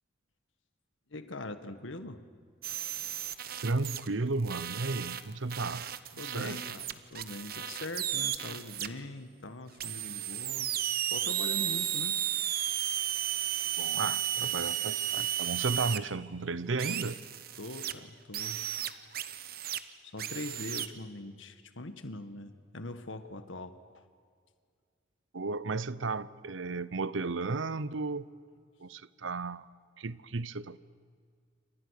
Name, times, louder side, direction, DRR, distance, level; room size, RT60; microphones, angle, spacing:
voice 1, 1.1-2.2 6.2-10.7 11.0-12.2 17.6-18.6 20.0-24.0, left 2 dB, 85° left, 9 dB, 1.8 m, -42 dB
sound 1, 2.6-4.1 4.5-8.9 9.8-16.0 16.8-17.9 18.3-19.8 20.2-20.9, right 11 dB, 50° right, 1.1 m, -34 dB
voice 2, 3.6-5.9 6.2-6.6 13.8-17.2 25.3-28.3 28.8-29.7 30.0-30.8, right 3 dB, 80° right, 17 dB, 0.8 m, -34 dB
29.0 x 26.5 x 6.6 m, 2.1 s
head